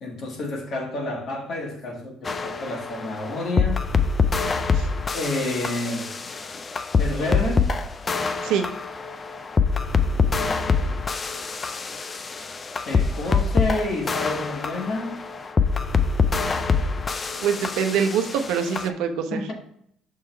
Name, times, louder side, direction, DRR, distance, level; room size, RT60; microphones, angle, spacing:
voice 1, 0.0-3.8 5.1-6.1 7.0-7.7 10.2-10.9 12.9-15.2 19.3-19.5, left 2 dB, 45° left, 1 dB, 1.5 m, -29 dB
sound 1, 2.2-18.9, left 5 dB, 20° left, 0.3 m, -25 dB
voice 2, 17.4-19.5, right 7 dB, 75° right, 6 dB, 0.8 m, -24 dB
6.4 x 3.7 x 4.4 m, 0.68 s
cardioid pair, 165°, 0 cm